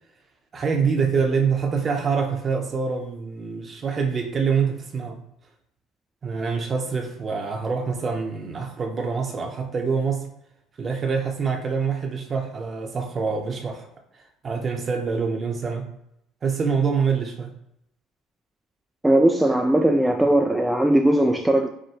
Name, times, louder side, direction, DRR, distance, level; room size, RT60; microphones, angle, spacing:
voice 1, 0.5-5.2 6.2-10.2 10.8-13.9 14.4-15.9 16.4-17.5, right 5 dB, 35° right, 4 dB, 0.8 m, -25 dB
voice 2, 19.0-21.7, right 1 dB, 5° right, 4 dB, 0.3 m, -19 dB
4.9 x 2.1 x 2.9 m, 0.76 s
hypercardioid pair, 60°, 0 cm